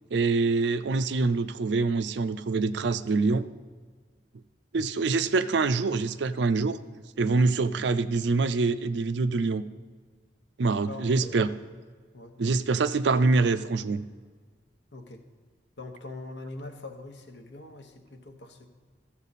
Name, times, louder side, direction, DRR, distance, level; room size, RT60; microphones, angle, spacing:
voice 1, 0.1-3.4 4.7-6.8 7.2-9.6 10.6-11.5 12.4-14.0, right 3 dB, 75° right, 13 dB, 0.4 m, -25 dB
voice 2, 10.8-11.6 12.1-12.6 14.9-15.2 15.8-18.7, left 2 dB, 75° left, 5 dB, 1.1 m, -43 dB
13.5 x 7.4 x 4.1 m, 1.6 s
head